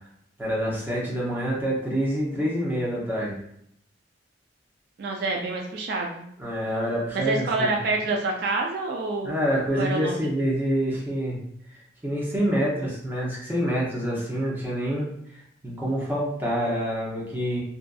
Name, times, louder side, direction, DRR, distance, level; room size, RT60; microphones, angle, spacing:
voice 1, 0.4-3.4 6.4-7.7 9.2-11.4 11.7-11.8 12.0-15.1 15.6-17.6, equal, 10° right, -5 dB, 0.7 m, -26 dB
voice 2, 5.0-6.3 7.1-9.4 9.7-10.2, right 3 dB, 55° right, 1 dB, 0.3 m, -27 dB
2.5 x 2.5 x 2.3 m, 0.72 s
head